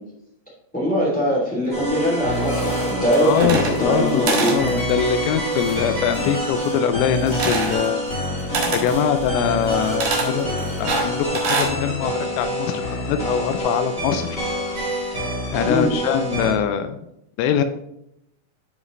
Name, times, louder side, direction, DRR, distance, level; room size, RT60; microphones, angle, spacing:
voice 1, 0.7-4.5 8.5-8.7 15.6-15.9, equal, 5° left, -7 dB, 0.9 m, -22 dB
sound 1, 1.6-12.0, left 3 dB, 65° left, 4.1 m, -44 dB
sound 2, 1.7-16.5, equal, 35° left, 1.0 m, -26 dB
voice 2, 3.2-8.0 8.7-10.5 10.8-14.4 15.5-17.0 17.4-17.7, left 8 dB, 85° left, 9 dB, 3.1 m, -23 dB
sound 3, 3.3-4.0 4.3-4.6 7.3-7.8 8.5-8.9 10.0-10.3 10.9-11.7, right 4 dB, 70° right, 1.9 m, -24 dB
13.0 x 4.9 x 3.2 m, 0.80 s
omnidirectional pair, 6.0 m